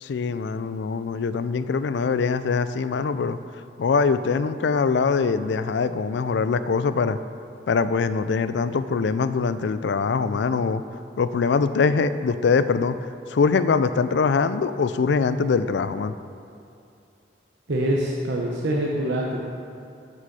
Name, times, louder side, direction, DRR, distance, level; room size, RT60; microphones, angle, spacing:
voice 1, 0.0-3.4 3.8-7.2 7.7-10.8 11.2-13.0 13.3-16.1, left 5 dB, 75° left, 12 dB, 0.4 m, -23 dB
voice 2, 17.7-19.5, right 1 dB, 80° right, -3 dB, 0.9 m, -25 dB
7.5 x 6.2 x 6.8 m, 2.5 s
head